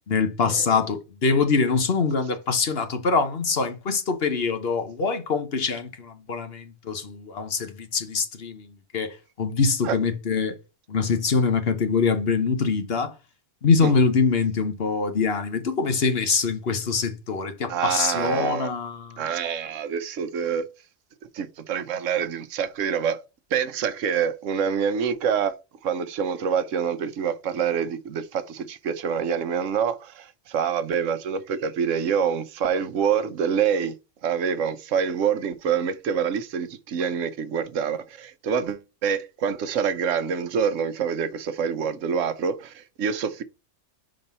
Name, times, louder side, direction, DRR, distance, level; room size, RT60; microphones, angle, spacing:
voice 1, 0.1-8.7 8.9-10.5 10.9-13.1 13.6-19.2, left 4 dB, 55° left, 1.2 m, -24 dB
voice 2, 17.7-18.7 19.2-20.6 21.3-23.2 23.5-25.5 25.8-33.9 34.2-43.4, right 7 dB, 90° right, 1.1 m, -26 dB
5.4 x 3.8 x 5.4 m
omnidirectional pair, 1.3 m